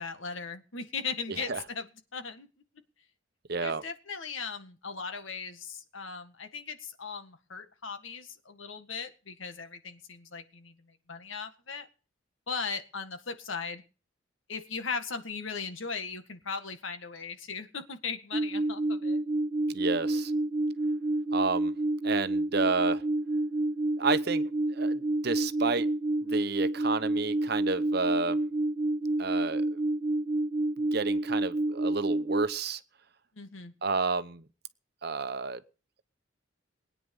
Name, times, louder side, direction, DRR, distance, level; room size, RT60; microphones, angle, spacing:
voice 1, 0.0-2.5 3.6-11.9 12.5-13.8 14.5-19.2 33.3-33.7, left 5 dB, 75° left, 1.8 m, -38 dB
voice 2, 1.3-1.6 3.5-3.8 19.7-20.3 21.3-21.7 22.0-23.0 24.0-24.4 24.7-25.9 26.2-28.4 29.2-29.6 30.9-32.8 33.8-34.4 35.0-35.6, right 4 dB, 50° right, 0.9 m, -30 dB
sound 1, 18.3-32.5, right 2 dB, 30° right, 1.0 m, -29 dB
21.0 x 9.5 x 5.5 m
head